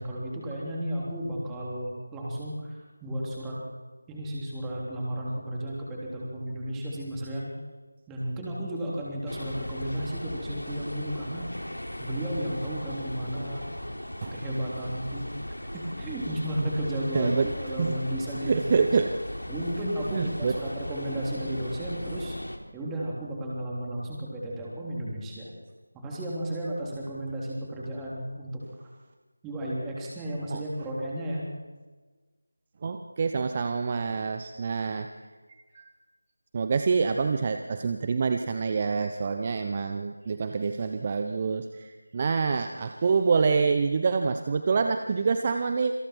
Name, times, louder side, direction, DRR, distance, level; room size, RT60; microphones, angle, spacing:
voice 1, 0.0-2.8 3.0-3.6 4.1-7.5 8.1-11.5 12.0-13.7 14.3-15.3 15.7-18.8 19.5-22.4 22.7-25.5 25.9-28.5 28.8-28.9 29.4-31.5 39.2-39.6, right 1 dB, 5° right, -4 dB, 3.4 m, -33 dB
sound 1, 9.3-22.6, equal, 80° left, 3.4 m, -37 dB
voice 2, 17.1-17.5 17.8-18.0 18.4-19.1 20.1-20.6 30.5-30.6 32.8-35.1 35.5-35.9 36.5-45.9, right 5 dB, 25° right, 7 dB, 0.8 m, -26 dB
27.5 x 26.0 x 4.6 m, 1.3 s
figure-of-eight pair, 165°, 0 cm